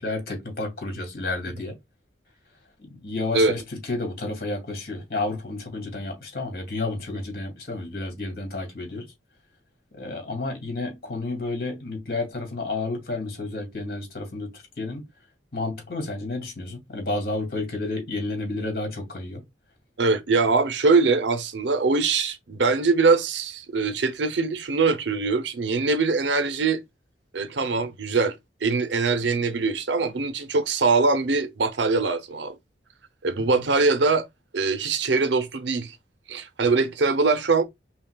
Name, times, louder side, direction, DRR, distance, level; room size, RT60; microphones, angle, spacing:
voice 1, 0.0-1.8 2.9-9.1 9.9-14.5 14.8-15.0 15.5-19.4 33.4-33.5, left 2 dB, 60° left, 2.2 m, -31 dB
voice 2, 20.0-26.8 27.3-32.5 33.2-34.3 34.5-36.0 36.3-37.6, right 4 dB, 85° right, 0.7 m, -22 dB
5.6 x 2.3 x 2.3 m
head